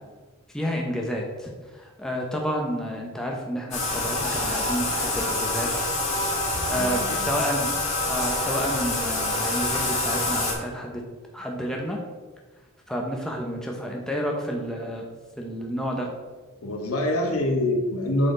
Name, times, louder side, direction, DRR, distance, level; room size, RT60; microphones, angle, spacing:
voice 1, 0.5-5.7 6.2-7.7 8.1-11.0 11.3-12.0 12.9-15.1 15.4-16.1, equal, 5° left, -1 dB, 0.8 m, -30 dB
Bathtub (filling or washing), 3.7-10.5, left 2 dB, 30° left, 1.9 m, -26 dB
voice 2, 6.7-7.2 16.6-18.3, left 1 dB, 80° left, 2 dB, 1.3 m, -25 dB
8.9 x 4.2 x 3.9 m, 1.3 s
head